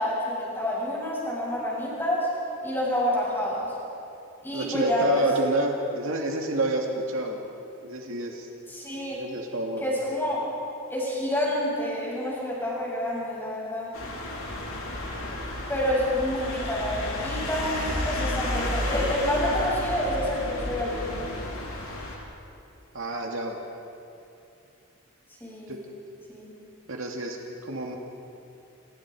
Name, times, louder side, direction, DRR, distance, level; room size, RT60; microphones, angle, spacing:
voice 1, 0.0-2.3 2.6-3.7 4.4-5.3 8.7-9.2 9.8-10.5 10.9-13.9 15.7-21.2 25.4-25.7 26.3-26.5, left 1 dB, 10° left, -5 dB, 7.6 m, -28 dB
voice 2, 4.5-7.4 7.8-8.5 9.1-9.8 22.9-23.6 25.7-25.8 26.9-28.0, right 1 dB, 65° right, 1 dB, 2.5 m, -29 dB
sound 1, 13.9-22.2, left 1 dB, 65° left, 4.8 m, -31 dB
29.0 x 29.0 x 4.9 m, 2.7 s
head